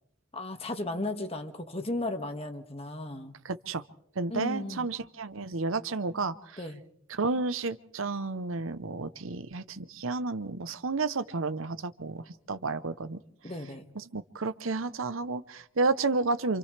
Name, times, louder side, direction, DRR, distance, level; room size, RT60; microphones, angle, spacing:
voice 1, 0.3-3.4 4.3-4.9 6.6-6.8 13.4-13.9, left 2 dB, 30° left, 6 dB, 1.9 m, -35 dB
voice 2, 3.4-3.8 4.2-6.6 7.1-13.2 14.0-16.6, right 3 dB, 75° right, 12 dB, 0.9 m, -31 dB
29.0 x 27.5 x 3.4 m, 0.69 s
head